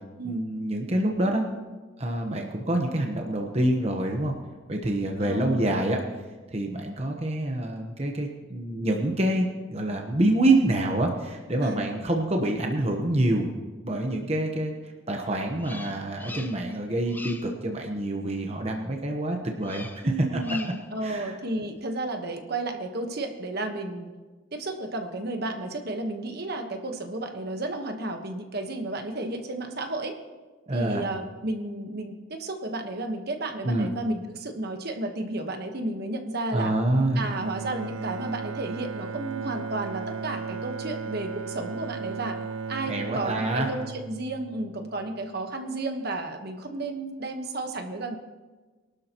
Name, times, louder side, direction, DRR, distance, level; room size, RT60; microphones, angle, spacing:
voice 1, 0.2-1.5 2.0-4.3 4.7-6.0 6.5-13.5 13.8-14.7 15.1-20.1 21.0-21.3 30.7-31.0 33.6-33.9 36.5-37.3 42.9-43.7, right 1 dB, 30° right, 2 dB, 1.1 m, -26 dB
voice 2, 5.2-5.8 11.6-11.9 20.0-24.1 24.5-30.1 30.7-36.7 37.1-42.4 42.7-48.2, right 2 dB, 50° right, 5 dB, 1.3 m, -32 dB
Bird vocalization bird call bird song, 15.6-16.8 17.0-17.6 19.6-20.1 20.4-20.9, left 2 dB, 10° left, 0.6 m, -41 dB
Bowed string instrument, 37.2-45.4, right 5 dB, 90° right, 0.7 m, -36 dB
23.5 x 12.0 x 3.0 m, 1.3 s
head